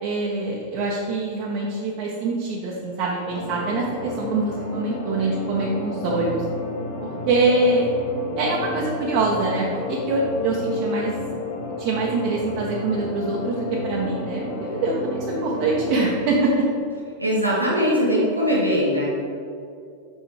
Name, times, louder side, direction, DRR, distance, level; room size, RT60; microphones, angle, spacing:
voice 1, 0.0-6.4 7.0-7.9 8.4-11.2 11.8-16.6, right 3 dB, 45° right, -4 dB, 0.9 m, -24 dB
sound 1, 3.3-16.2, left 2 dB, 55° left, 1.1 m, -31 dB
voice 2, 17.2-19.0, equal, 85° right, -6 dB, 1.4 m, -21 dB
6.3 x 5.0 x 4.8 m, 2.4 s
figure-of-eight pair, 90°, 0 cm